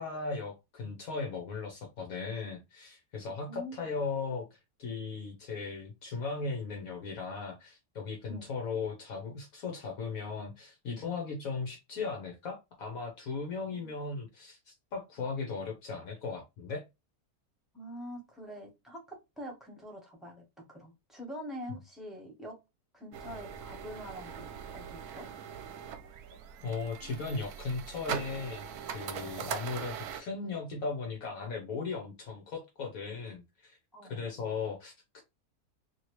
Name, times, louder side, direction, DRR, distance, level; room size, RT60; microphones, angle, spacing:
voice 1, 0.0-16.9 26.6-33.8 34.1-35.2, left 4 dB, 70° left, 1.2 m, -37 dB
voice 2, 3.3-3.9 8.3-8.5 13.6-13.9 15.2-15.3 17.7-22.5 22.9-24.5 24.7-25.3 29.2-29.4 33.9-34.2, equal, ahead, 1.0 m, -45 dB
sound 1, 23.1-30.2, right 8 dB, 85° right, 1.1 m, -41 dB
2.9 x 2.8 x 3.0 m
omnidirectional pair, 1.6 m